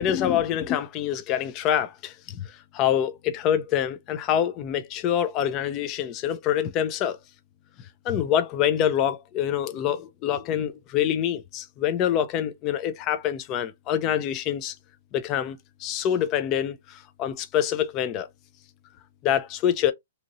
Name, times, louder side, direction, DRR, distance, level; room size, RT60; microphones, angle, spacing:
voice 1, 0.0-2.5 2.7-7.2 8.1-14.7 15.1-16.8 17.2-18.3 19.2-19.9, left 10 dB, 25° left, 0.4 m, -25 dB
2.7 x 2.6 x 2.9 m
hypercardioid pair, 155°, 0 cm